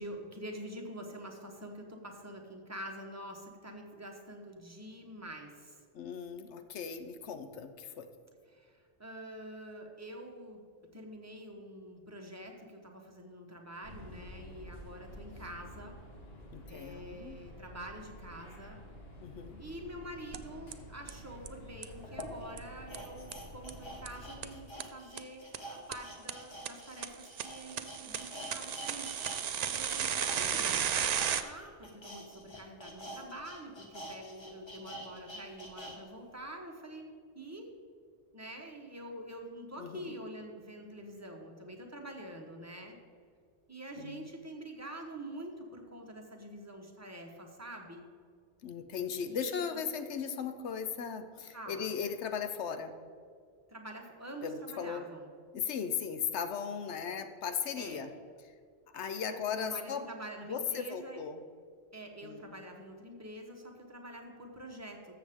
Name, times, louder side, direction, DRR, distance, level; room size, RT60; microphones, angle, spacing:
voice 1, 0.0-5.8 8.5-10.6 10.9-16.0 16.7-18.8 19.6-29.2 29.7-30.8 31.4-37.7 38.3-43.0 43.7-48.1 49.2-49.8 51.5-51.9 53.7-55.3 57.8-58.0 58.9-61.2 61.9-65.1, right 1 dB, 15° right, 1 dB, 1.0 m, -46 dB
voice 2, 5.9-8.1 16.5-17.4 19.2-19.6 30.4-30.7 39.7-40.2 43.9-44.2 48.6-52.9 54.4-55.1 55.5-58.1 58.9-60.1 60.5-61.4 62.2-62.6, left 6 dB, 75° left, 9 dB, 0.9 m, -37 dB
sound 1, 13.8-24.6, equal, 60° left, 1.9 m, -50 dB
sound 2, 20.3-20.4 20.7-20.8 21.1-21.2 21.5-21.6 21.8-21.9 22.2-22.3 22.6-22.7 22.9-23.0 23.3-23.4 23.7-23.8 24.1-24.2 24.4-24.5 24.8-24.9 25.2-25.3 25.5-25.6 25.9-26.0 26.3-26.4 26.7-26.8 27.0-31.4, right 8 dB, 60° right, 0.4 m, -33 dB
sound 3, 21.3-21.4 22.0-29.4 29.7-36.0 36.4-36.5, equal, 25° left, 1.2 m, -47 dB
13.5 x 6.9 x 3.6 m, 2.1 s
omnidirectional pair, 1.2 m